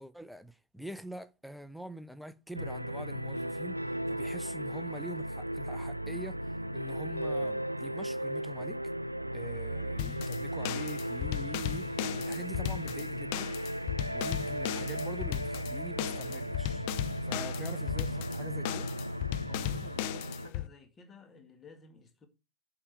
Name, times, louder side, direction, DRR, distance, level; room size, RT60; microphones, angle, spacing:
voice 1, 0.0-6.4 6.7-8.8 9.3-13.6 14.1-16.8 17.2-18.9, right 1 dB, ahead, 0.8 m, -45 dB
sound 1, 2.5-20.5, right 1 dB, 90° right, 0.4 m, -36 dB
sound 2, 10.0-20.7, left 15 dB, 45° left, 0.5 m, -36 dB
voice 2, 19.5-22.3, left 3 dB, 20° left, 2.0 m, -53 dB
7.2 x 5.0 x 7.3 m
figure-of-eight pair, 90°, 0 cm